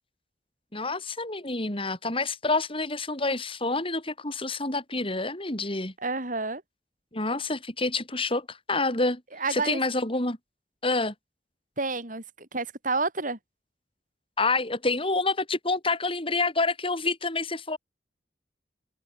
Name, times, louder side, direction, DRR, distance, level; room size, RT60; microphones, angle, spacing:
voice 1, 0.7-5.9 7.1-9.2 9.5-10.4 10.8-11.1 14.4-17.8, left 3 dB, 30° left, 7.9 m, -28 dB
voice 2, 6.0-6.6 9.4-9.8 11.8-13.4, right 3 dB, 50° right, 6.8 m, -29 dB
open air
head